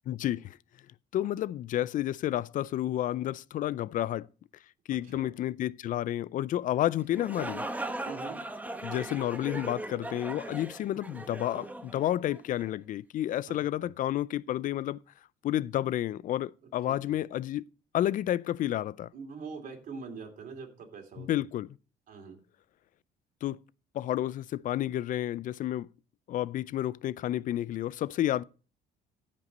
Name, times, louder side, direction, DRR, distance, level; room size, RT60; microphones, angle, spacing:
voice 1, 0.1-0.6 1.1-4.3 4.9-7.6 8.8-15.0 15.4-17.7 17.9-19.1 21.2-21.7 23.4-23.6 23.9-25.9 26.3-28.4, left 12 dB, 50° left, 0.4 m, -30 dB
voice 2, 4.9-5.3 8.0-8.4 13.5-13.9 16.8-17.2 19.1-21.3 22.1-22.4, right 5 dB, 55° right, 3.0 m, -43 dB
sound 1, 7.0-12.7, right 2 dB, 10° right, 1.0 m, -39 dB
15.0 x 5.3 x 4.0 m
cardioid pair, 110°, 17 cm